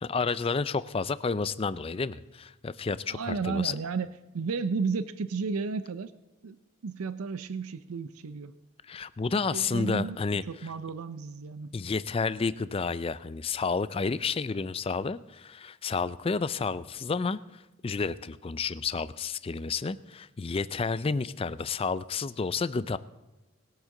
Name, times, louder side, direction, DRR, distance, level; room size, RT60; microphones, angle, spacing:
voice 1, 0.0-3.8 8.8-10.7 11.7-23.0, left 4 dB, 25° left, 16 dB, 0.3 m, -31 dB
voice 2, 3.1-4.1 4.3-6.1 6.4-6.6 6.8-8.5 9.5-11.8, right 4 dB, 85° right, 13 dB, 0.5 m, -33 dB
21.5 x 8.2 x 3.8 m, 1.1 s
head